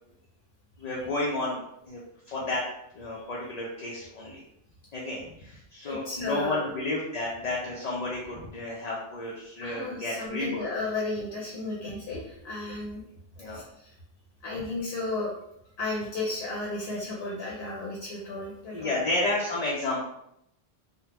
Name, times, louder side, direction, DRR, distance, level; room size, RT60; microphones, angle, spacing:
voice 1, 0.8-2.0 2.3-2.6 2.9-4.4 4.9-10.7 13.4-13.6 18.7-20.0, left 2 dB, 45° left, -4 dB, 0.6 m, -31 dB
voice 2, 5.8-6.7 9.6-13.0 13.5-13.9 14.4-15.3 15.8-18.9, left 2 dB, 70° left, -4 dB, 1.0 m, -34 dB
3.4 x 2.1 x 2.9 m, 0.76 s
omnidirectional pair, 1.1 m